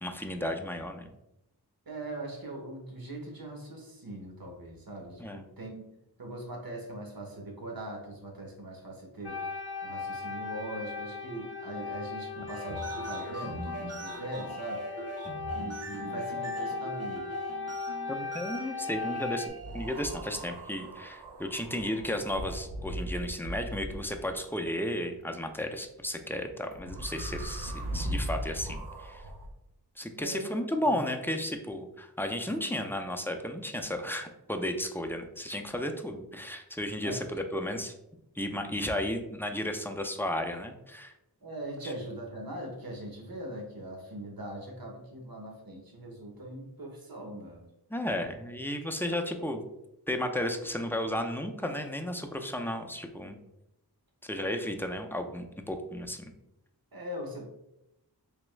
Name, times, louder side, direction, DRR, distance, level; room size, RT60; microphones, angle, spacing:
voice 1, 0.0-1.1 5.2-5.4 18.1-29.2 30.0-37.9 38.4-41.1 41.8-41.9 47.9-49.6 50.1-53.4 54.2-56.3, left 1 dB, 5° left, 4 dB, 0.4 m, -34 dB
voice 2, 1.9-5.9 6.2-9.4 9.8-14.8 15.5-17.3 30.2-31.0 37.0-37.2 41.4-47.6 49.4-49.5 56.9-57.4, right 1 dB, 60° right, 1 dB, 1.0 m, -41 dB
sound 1, 9.2-19.5, left 4 dB, 75° left, 0.5 m, -38 dB
sound 2, 12.4-20.6, right 1 dB, 40° right, 0.6 m, -41 dB
sound 3, 19.6-24.4 26.7-29.5, equal, 90° right, 0.6 m, -38 dB
3.5 x 3.0 x 3.1 m, 0.87 s
wide cardioid pair, 50°, 40 cm